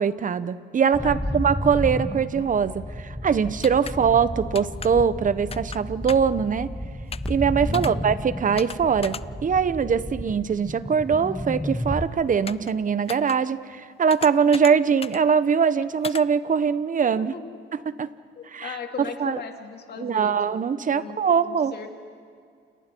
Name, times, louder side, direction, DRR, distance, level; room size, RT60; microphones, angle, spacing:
voice 1, 0.0-6.7 7.3-17.3 17.9-18.1 18.5-19.4 20.0-21.9, right 6 dB, 40° right, 14 dB, 1.0 m, -22 dB
sound 1, 0.9-12.1, equal, 5° left, 1.5 m, -32 dB
voice 2, 1.0-1.4 3.8-4.2 7.7-8.1 17.0-17.6 18.4-20.7 20.9-21.9, left 6 dB, 55° left, 4 dB, 2.7 m, -38 dB
sound 2, 3.6-3.9 4.5-4.9 5.5-5.8 6.1-6.3 7.1-7.3 7.7-7.9 8.6-8.8 9.0-9.2 12.5-12.7 13.1-13.4 14.1-14.7 15.0-15.2 16.0-16.2, left 6 dB, 30° left, 0.5 m, -35 dB
29.5 x 29.0 x 4.6 m, 2.2 s
cardioid pair, 90°, 20 cm